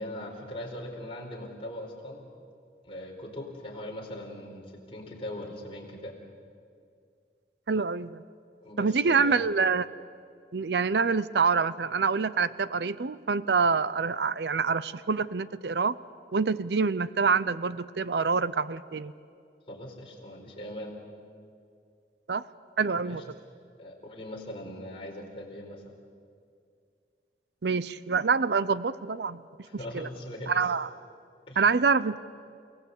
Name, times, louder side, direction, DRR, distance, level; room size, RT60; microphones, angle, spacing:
voice 1, 0.0-2.2 2.8-6.1 8.6-9.4 19.7-21.0 23.0-23.2 23.8-25.9 29.6-30.5 31.5-31.6, left 1 dB, 30° left, -2 dB, 4.4 m, -40 dB
voice 2, 7.7-8.2 8.8-9.9 10.5-16.0 16.3-19.1 22.3-22.4 22.8-23.2 27.6-29.4 29.9-30.1 30.5-30.9 31.6-32.2, right 5 dB, 70° right, 17 dB, 0.6 m, -26 dB
30.0 x 17.5 x 8.3 m, 2.3 s
head